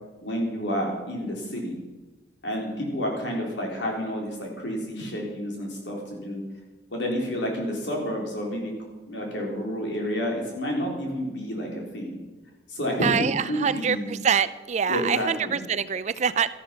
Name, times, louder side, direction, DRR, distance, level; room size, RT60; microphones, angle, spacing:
voice 1, 0.2-1.8 2.4-6.4 6.9-8.7 9.1-12.2 12.7-14.1 14.9-15.6, equal, 80° left, -1 dB, 4.0 m, -30 dB
voice 2, 13.0-16.5, right 7 dB, 40° right, 15 dB, 0.4 m, -25 dB
13.0 x 11.5 x 5.9 m, 1.2 s
head